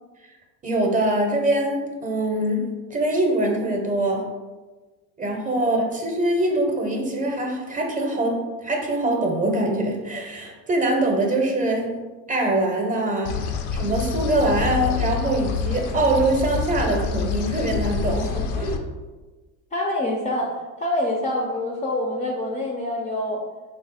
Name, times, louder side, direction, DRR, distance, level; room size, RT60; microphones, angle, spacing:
voice 1, 0.6-2.6 2.9-4.3 5.2-11.9 12.3-18.8, right 1 dB, 20° right, 1 dB, 0.7 m, -23 dB
sound 1, 13.3-18.8, left 5 dB, 80° left, 0.5 m, -27 dB
voice 2, 19.7-23.4, left 1 dB, 20° left, 0 dB, 0.4 m, -26 dB
3.1 x 2.4 x 4.0 m, 1.3 s
supercardioid pair, 100°, 36 cm